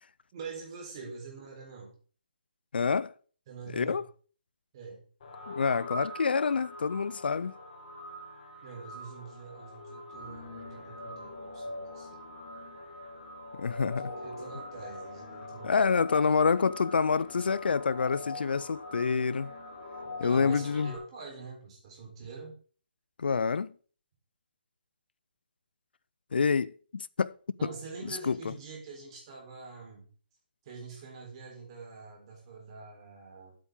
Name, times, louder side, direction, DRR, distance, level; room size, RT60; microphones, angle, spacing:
voice 1, 0.3-1.9 3.5-4.0 4.7-5.0 8.6-12.2 13.8-15.9 20.0-22.6 27.6-30.1 30.6-33.6, right 4 dB, 30° right, 3.8 m, -45 dB
voice 2, 2.7-3.1 3.7-4.1 5.5-7.6 13.5-14.1 15.6-19.5 20.2-20.9 23.2-23.7 26.3-27.3 27.6-27.7 28.0-28.5, left 5 dB, 75° left, 0.4 m, -27 dB
sound 1, 5.2-21.0, left 1 dB, 40° left, 3.3 m, -43 dB
8.7 x 8.4 x 3.7 m
hypercardioid pair, 160°, 5 cm